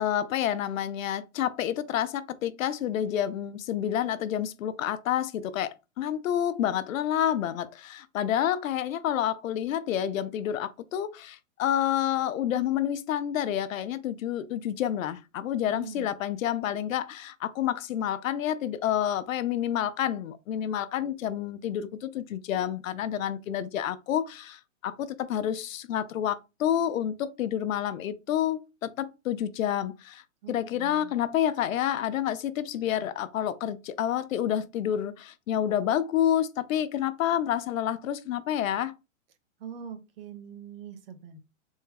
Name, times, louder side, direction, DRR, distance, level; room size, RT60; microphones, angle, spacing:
voice 1, 0.0-30.2 30.5-38.9, left 10 dB, 80° left, 0.6 m, -29 dB
voice 2, 15.6-16.1 30.4-31.1 39.6-41.4, right 7 dB, 45° right, 0.7 m, -43 dB
3.5 x 2.1 x 3.2 m
hypercardioid pair, 145°, 39 cm